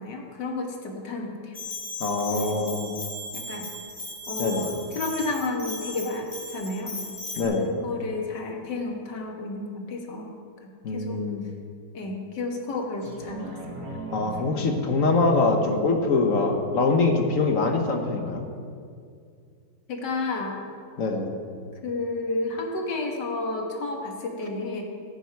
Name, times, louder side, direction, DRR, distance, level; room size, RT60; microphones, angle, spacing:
voice 1, 0.0-1.6 2.3-2.7 3.3-3.7 4.3-7.0 7.4-10.3 10.9-11.2 11.9-13.6 19.9-20.6 21.8-24.8, left 2 dB, 70° left, 2 dB, 2.1 m, -31 dB
Bell, 1.5-7.4, left 2 dB, 30° left, 2.2 m, -37 dB
voice 2, 2.0-3.0 4.4-4.7 7.4-7.7 10.8-11.5 14.1-18.5 21.0-21.3, left 3 dB, 50° left, 4 dB, 1.3 m, -24 dB
sound 1, 13.0-18.0 18.5-18.6, right 2 dB, 65° right, 2.2 m, -40 dB
15.5 x 10.0 x 4.6 m, 2.3 s
omnidirectional pair, 2.0 m